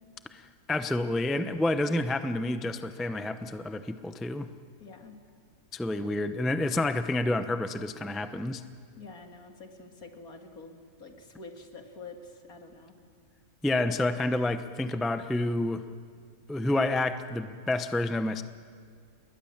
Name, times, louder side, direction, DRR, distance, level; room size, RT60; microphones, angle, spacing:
voice 1, 0.3-4.5 5.7-8.6 13.6-15.8 16.5-18.4, left 2 dB, ahead, 9 dB, 0.4 m, -29 dB
voice 2, 4.8-5.2 9.0-12.9, left 3 dB, 70° left, 4 dB, 2.6 m, -47 dB
29.5 x 21.5 x 7.4 m, 2.1 s
omnidirectional pair, 1.6 m